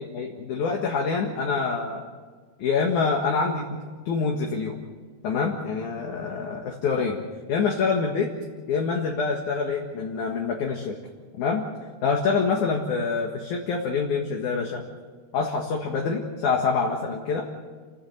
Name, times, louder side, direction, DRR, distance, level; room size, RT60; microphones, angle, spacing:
voice 1, 0.0-2.0 2.6-3.6 4.1-4.8 5.2-7.2 7.5-8.3 8.7-11.0 11.4-11.6 12.0-14.8 15.3-17.5, left 5 dB, 55° left, 1 dB, 2.6 m, -26 dB
28.5 x 16.0 x 8.0 m, 1.4 s
omnidirectional pair, 4.8 m